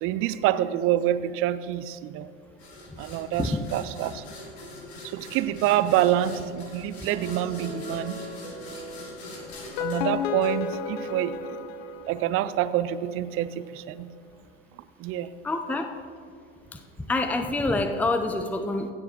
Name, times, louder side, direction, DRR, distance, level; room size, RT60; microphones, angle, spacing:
voice 1, 0.0-2.3 3.0-4.2 5.0-8.2 9.8-11.4 12.1-14.1 15.0-15.3, right 12 dB, 40° right, 15 dB, 0.6 m, -26 dB
sound 1, 2.6-11.1, left 2 dB, 75° left, 2.9 m, -43 dB
sound 2, 7.1-10.6, equal, 15° right, 2.6 m, -41 dB
sound 3, 9.5-12.7, left 6 dB, 55° left, 0.8 m, -32 dB
voice 2, 15.4-15.9 17.1-18.9, left 2 dB, 5° left, 7 dB, 0.7 m, -26 dB
16.0 x 7.7 x 4.4 m, 2.2 s
hypercardioid pair, 85°, 33 cm